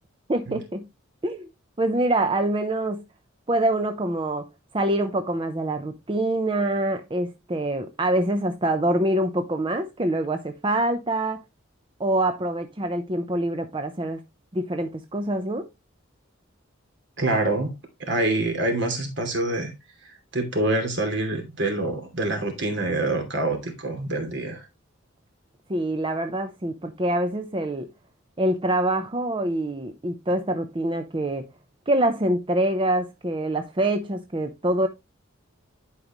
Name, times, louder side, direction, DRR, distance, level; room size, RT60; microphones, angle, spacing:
voice 1, 0.3-0.9 1.2-1.5 1.8-3.0 3.5-4.5 4.7-11.4 12.0-14.2 14.5-15.7 25.7-27.9 28.4-31.5 31.9-34.9, right 1 dB, 25° right, 0.7 m, -25 dB
voice 2, 17.2-17.7 18.0-19.7 20.0-24.6, right 2 dB, 60° right, 2.7 m, -26 dB
11.5 x 5.2 x 3.0 m
head